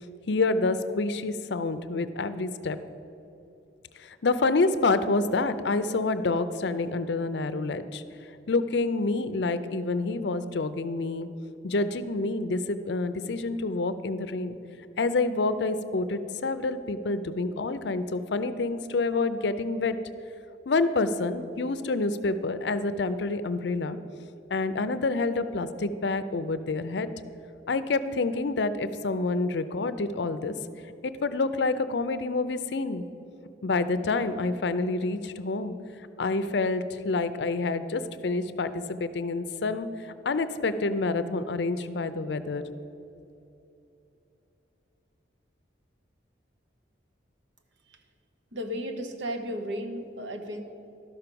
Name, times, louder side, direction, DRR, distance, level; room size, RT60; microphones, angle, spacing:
voice 1, 0.3-2.8 4.0-8.0 8.5-11.3 11.6-14.6 15.0-20.0 20.7-24.0 24.5-27.1 27.7-30.5 31.0-33.0 33.6-35.7 36.2-39.9 40.2-42.6, left 3 dB, 65° left, 12 dB, 0.5 m, -28 dB
voice 2, 48.5-50.6, equal, 75° right, 6 dB, 1.0 m, -34 dB
12.0 x 5.9 x 6.8 m, 2.9 s
head